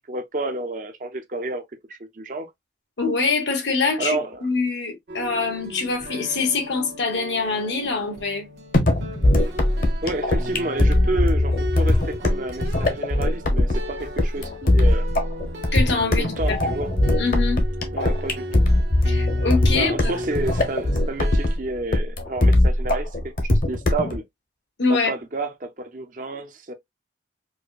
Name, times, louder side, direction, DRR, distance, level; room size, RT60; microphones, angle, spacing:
voice 1, 0.0-1.6 1.9-2.5 4.0-4.5 10.0-15.1 16.2-16.9 17.9-18.6 19.7-23.1 23.4-24.2 24.9-26.7, right 2 dB, 45° right, 0.6 m, -30 dB
voice 2, 3.0-8.5 15.7-16.6 17.2-17.6 19.0-20.2 24.8-25.1, left 4 dB, 80° left, 1.3 m, -24 dB
sound 1, 5.1-21.6, equal, 70° right, 1.2 m, -36 dB
sound 2, 8.7-24.2, left 1 dB, 50° left, 0.9 m, -20 dB
4.7 x 2.1 x 2.4 m
head